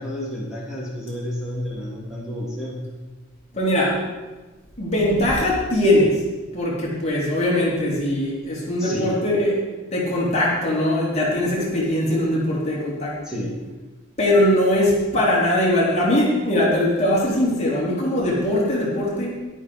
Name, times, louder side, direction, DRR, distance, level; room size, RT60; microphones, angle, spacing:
voice 1, 0.0-2.8 8.8-9.1 13.2-13.5, equal, 5° right, -7 dB, 3.3 m, -30 dB
voice 2, 3.5-4.0 4.8-6.2 6.5-9.6 9.9-13.2 14.2-19.3, left 1 dB, 30° left, -6 dB, 3.9 m, -21 dB
13.0 x 11.5 x 4.8 m, 1.2 s
head